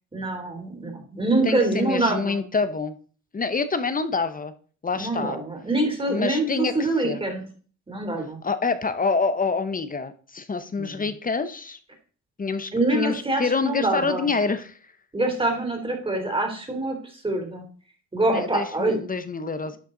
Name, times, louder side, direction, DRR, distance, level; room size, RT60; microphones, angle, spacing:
voice 1, 0.1-2.4 4.9-7.4 7.9-8.4 10.8-11.0 12.7-14.3 15.1-17.0 17.2-17.6 18.1-19.0, right 2 dB, 20° right, 2 dB, 3.4 m, -25 dB
voice 2, 1.4-2.9 3.3-4.5 4.8-5.4 6.1-7.2 8.4-11.8 12.4-14.8 18.3-19.8, left 4 dB, 30° left, 12 dB, 1.0 m, -27 dB
11.5 x 6.7 x 3.9 m, 0.42 s
cardioid pair, 90°, 30 cm